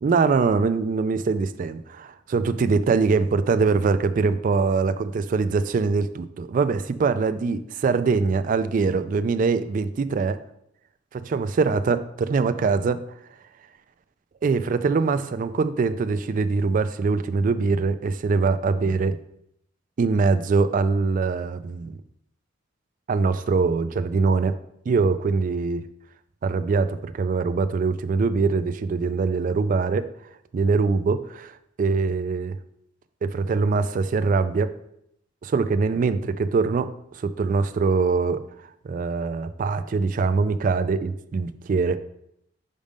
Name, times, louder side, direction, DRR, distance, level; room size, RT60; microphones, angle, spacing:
voice 1, 0.0-10.4 11.1-13.0 14.4-19.2 20.0-22.0 23.1-24.6 24.9-25.8 26.4-30.1 30.5-31.5 31.8-32.6 33.2-34.7 35.4-38.4 38.8-42.0, right 4 dB, 45° right, 11 dB, 0.3 m, -23 dB
5.2 x 5.1 x 5.2 m, 0.76 s
head